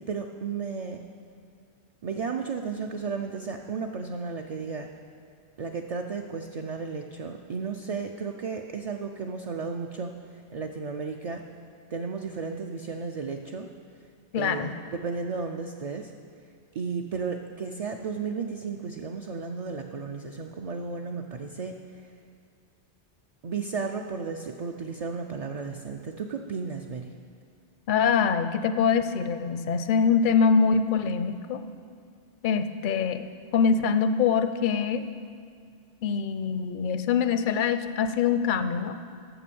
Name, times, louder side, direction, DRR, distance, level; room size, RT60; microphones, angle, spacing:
voice 1, 0.1-1.0 2.0-4.9 5.6-11.4 11.9-13.7 14.4-16.1 16.7-22.1 23.4-27.1, right 5 dB, 55° right, 3 dB, 0.4 m, -34 dB
voice 2, 14.3-14.7 27.9-31.6 32.4-33.3 33.5-35.0 36.0-39.0, left 6 dB, 60° left, 10 dB, 0.6 m, -24 dB
8.8 x 6.9 x 6.8 m, 2.3 s
omnidirectional pair, 1.1 m